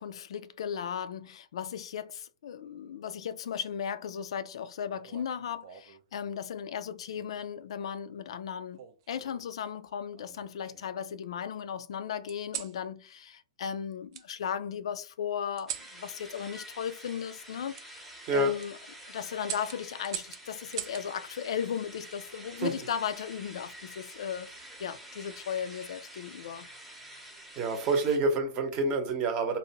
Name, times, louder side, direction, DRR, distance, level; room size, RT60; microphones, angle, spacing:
voice 1, 0.0-8.8 9.1-18.1 18.3-18.8 19.1-24.5 24.8-26.7, left 8 dB, 70° left, 0.3 m, -36 dB
sound 1, 4.9-6.0 7.1-7.5 8.7-9.5 10.1-11.0 12.3-12.8 14.1-14.3 15.6-15.9 17.7-17.9 18.4-18.7 19.4-21.1 22.6-23.0, right 10 dB, 50° right, 0.4 m, -42 dB
sound 2, 15.7-28.2, right 1 dB, ahead, 0.7 m, -48 dB
voice 2, 27.6-29.6, right 2 dB, 35° right, 0.8 m, -27 dB
2.7 x 2.1 x 2.8 m
hypercardioid pair, 130°, 3 cm